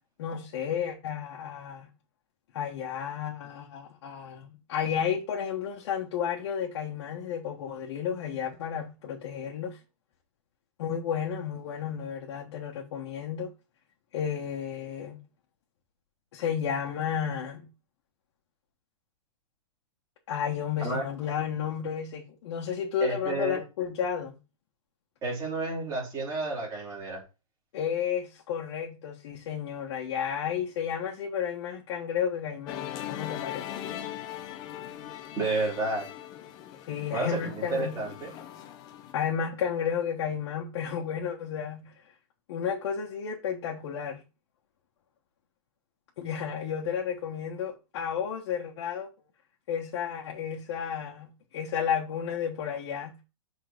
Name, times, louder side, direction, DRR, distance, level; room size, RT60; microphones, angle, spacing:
voice 1, 0.2-1.9 2.5-9.8 10.8-13.5 14.1-15.2 16.3-17.7 20.3-24.4 27.7-33.8 36.9-38.0 39.1-41.9 42.5-44.2 46.2-49.1 49.7-53.1, left 8 dB, 50° left, 1.3 m, -32 dB
voice 2, 23.0-23.6 25.2-27.2 35.4-36.1 37.1-38.3, right 3 dB, 15° right, 3.0 m, -31 dB
Musical instrument, 32.7-39.1, left 11 dB, 20° left, 0.7 m, -40 dB
6.3 x 3.9 x 5.1 m
supercardioid pair, 170°, 18 cm